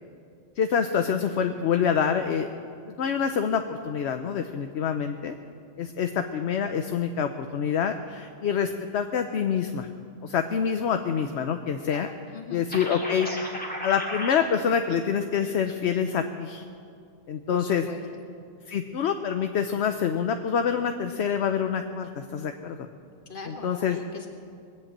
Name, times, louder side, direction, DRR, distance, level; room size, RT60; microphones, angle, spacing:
voice 1, 0.6-2.5 2.9-5.3 5.8-9.9 10.2-12.1 12.5-13.3 13.8-16.6 17.3-17.8 18.7-22.8 23.6-24.0, left 7 dB, 60° left, 7 dB, 0.9 m, -26 dB
voice 2, 11.9-12.7 17.5-18.3 23.2-24.3, left 3 dB, 40° left, 2 dB, 1.8 m, -41 dB
sound 1, 12.7-14.4, equal, 5° left, 2.3 m, -34 dB
21.0 x 7.9 x 8.7 m, 2.3 s
omnidirectional pair, 1.4 m